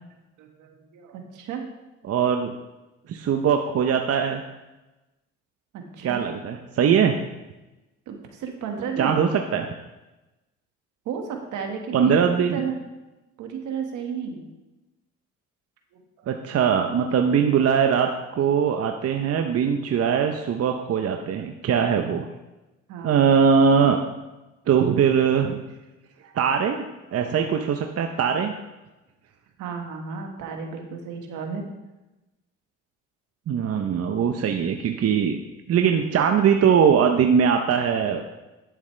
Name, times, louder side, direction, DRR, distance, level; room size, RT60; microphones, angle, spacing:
voice 1, 0.4-1.6 5.7-6.2 8.1-9.2 11.0-12.8 13.4-14.5 16.2-16.3 22.9-23.2 29.6-31.6, right 6 dB, 75° right, 3 dB, 1.7 m, -33 dB
voice 2, 2.0-2.5 3.1-4.4 6.0-7.1 9.0-9.7 11.9-12.6 16.3-18.1 18.4-22.3 23.0-24.0 24.7-25.6 26.3-26.8 27.1-28.5 33.5-35.4 35.7-38.2, right 7 dB, 50° right, 4 dB, 0.8 m, -21 dB
11.0 x 8.5 x 3.3 m, 1.1 s
supercardioid pair, 75°, 31 cm